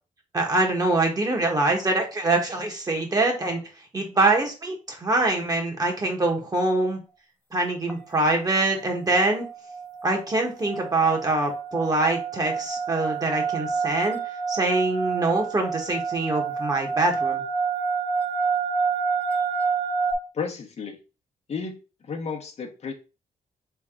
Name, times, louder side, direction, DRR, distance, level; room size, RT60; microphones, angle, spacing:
voice 1, 0.3-3.6 3.9-7.0 7.5-9.5 10.0-14.2 14.5-17.4, right 2 dB, 25° right, 1 dB, 1.4 m, -24 dB
sound 1, 7.9-8.0 8.3-8.7 9.1-20.1, right 5 dB, 10° left, 0.9 m, -28 dB
voice 2, 20.3-21.0 21.5-22.9, left 5 dB, 50° left, 2 dB, 1.0 m, -33 dB
3.7 x 3.5 x 3.7 m, 0.31 s
cardioid pair, 100°, 14 cm